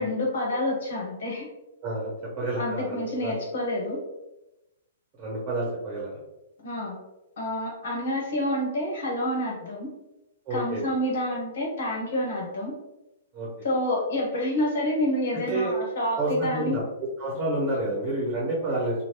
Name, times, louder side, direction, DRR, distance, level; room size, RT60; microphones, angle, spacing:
voice 1, 0.0-1.5 2.5-4.0 6.6-7.0 7.4-9.9 10.5-12.7 13.6-16.8, left 1 dB, 65° left, -2 dB, 1.2 m, -28 dB
voice 2, 2.4-3.4 5.2-6.1 10.5-10.8 13.3-13.5 15.5-15.7 16.2-16.8 17.2-19.1, right 2 dB, 30° right, -4 dB, 1.0 m, -29 dB
3.0 x 2.4 x 2.9 m, 0.94 s
figure-of-eight pair, 115°, 0 cm